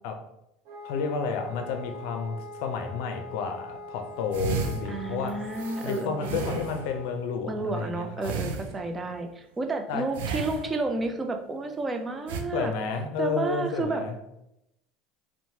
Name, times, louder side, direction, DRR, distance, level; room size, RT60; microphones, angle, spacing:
Wind instrument woodwind instrument, 0.7-7.3, left 2 dB, 70° right, 1.1 m, -43 dB
voice 1, 0.8-5.4 5.8-8.6 9.9-10.1 12.5-14.2, left 5 dB, 70° left, 5 dB, 0.4 m, -31 dB
sound 1, 4.3-7.1 8.2-9.1 10.1-11.1 12.3-12.4, right 5 dB, 90° right, 0.3 m, -34 dB
voice 2, 4.9-6.6 7.5-12.7 13.2-14.0, right 3 dB, 20° right, 6 dB, 0.4 m, -31 dB
2.9 x 2.1 x 2.7 m, 0.84 s
supercardioid pair, 105°, 0 cm